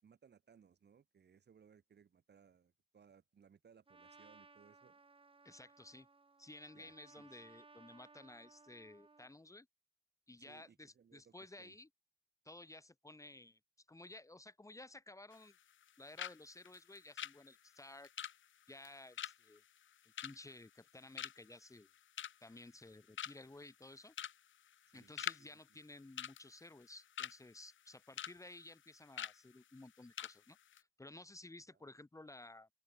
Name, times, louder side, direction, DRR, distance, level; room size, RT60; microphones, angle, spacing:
voice 1, 0.0-5.0 6.7-7.5 10.4-11.8 24.9-25.1 25.4-25.8 31.7-31.8, right 7 dB, 55° right, 1.8 m, -66 dB
Trumpet, 3.9-9.3, right 4 dB, 25° right, 1.8 m, -63 dB
voice 2, 5.4-6.1 6.4-9.7 10.3-11.9 12.4-13.6 13.9-15.6 16.0-18.1 18.7-19.6 20.2-21.9 22.4-24.1 24.9-32.7, left 2 dB, 15° left, 1.3 m, -55 dB
sound 1, 15.3-15.9 16.2-16.4 16.6-20.9 21.2-21.6 21.9-22.5 22.9-23.0 23.2-23.6 24.1-24.4 24.7-25.4 25.7-25.8 26.2-27.4 27.8-28.3 28.6-28.8 29.2-29.4 29.8-29.9 30.2-30.4 30.6-30.8, left 10 dB, 65° left, 0.7 m, -44 dB
wide cardioid pair, 165°, 21 cm